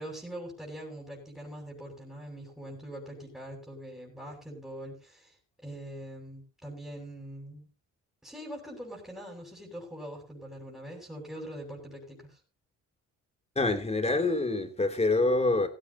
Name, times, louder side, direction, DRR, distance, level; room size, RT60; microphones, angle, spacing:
voice 1, 0.0-7.7 8.2-12.4, right 1 dB, 5° right, 7.8 m, -43 dB
voice 2, 13.5-15.7, left 2 dB, 20° left, 3.1 m, -26 dB
17.0 x 16.0 x 2.9 m
cardioid pair, 90°, 30 cm